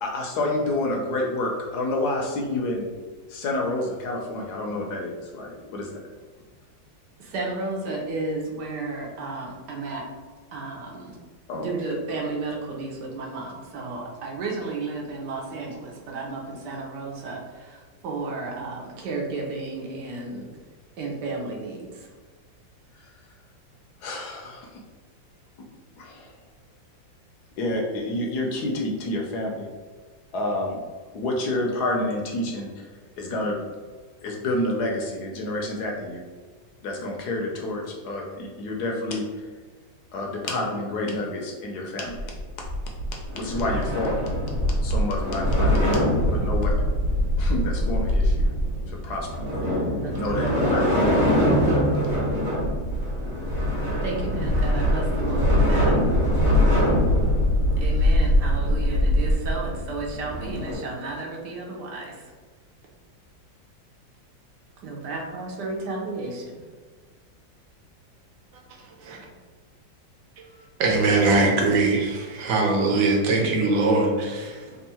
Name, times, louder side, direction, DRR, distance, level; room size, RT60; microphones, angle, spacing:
voice 1, 0.0-2.9 3.3-6.0 11.5-11.7 24.0-24.7 26.0-26.3 27.6-29.7 30.3-30.8 31.1-32.9 33.2-33.6 34.2-36.2 36.8-39.2 40.1-42.2 43.3-44.1 44.8-46.7 47.4-48.5 49.0-49.3 50.2-51.0, left 1 dB, 70° left, 0 dB, 1.1 m, -28 dB
voice 2, 7.2-10.0 10.5-11.2 11.5-20.5 21.0-22.1 50.0-50.7 54.0-55.9 57.8-62.3 64.8-66.6, right 3 dB, 70° right, -1 dB, 1.3 m, -33 dB
sound 1, 42.2-60.7, equal, 40° right, 1.4 m, -22 dB
voice 3, 70.8-74.8, right 3 dB, 85° right, 1 dB, 1.5 m, -21 dB
3.6 x 2.4 x 4.2 m, 1.4 s
omnidirectional pair, 2.0 m